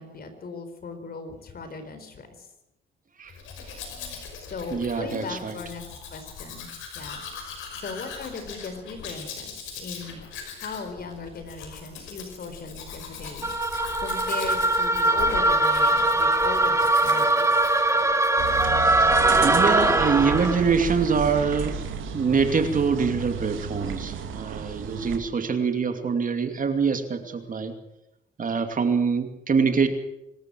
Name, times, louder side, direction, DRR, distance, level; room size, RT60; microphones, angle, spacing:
voice 1, 0.0-2.5 4.5-5.8 6.1-6.7 6.9-7.2 7.8-17.6, left 4 dB, 50° left, 8 dB, 4.4 m, -38 dB
Domestic sounds home sounds, 3.3-18.7 19.0-19.5, left 6 dB, 85° left, 5.7 m, -40 dB
voice 2, 3.7-4.1 4.7-5.5 13.2-13.3 19.4-21.7 22.1-27.7 28.4-29.9, right 5 dB, 40° right, 7 dB, 2.6 m, -24 dB
sound 1, 13.4-20.7, right 2 dB, 15° right, 1.4 m, -21 dB
sound 2, 18.4-25.2, right 7 dB, 80° right, 2.6 m, -32 dB
25.5 x 13.5 x 7.7 m, 0.89 s
cardioid pair, 90°, 20 cm